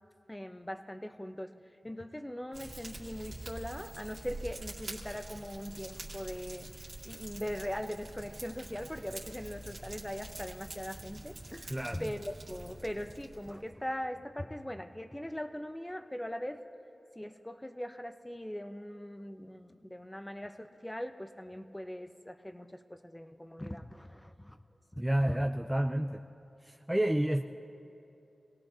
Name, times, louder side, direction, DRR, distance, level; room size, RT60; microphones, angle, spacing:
voice 1, 0.3-1.6 1.8-6.7 7.0-16.6 17.1-24.6 24.9-25.4, equal, 15° left, 8 dB, 0.9 m, -41 dB
Fire, 2.5-13.7, right 1 dB, 70° right, 2.3 m, -46 dB
voice 2, 11.7-12.0 25.0-26.2 26.6-27.4, right 1 dB, 10° right, 4 dB, 0.5 m, -29 dB
25.5 x 17.5 x 2.8 m, 2.7 s
cardioid pair, 40°, 0 cm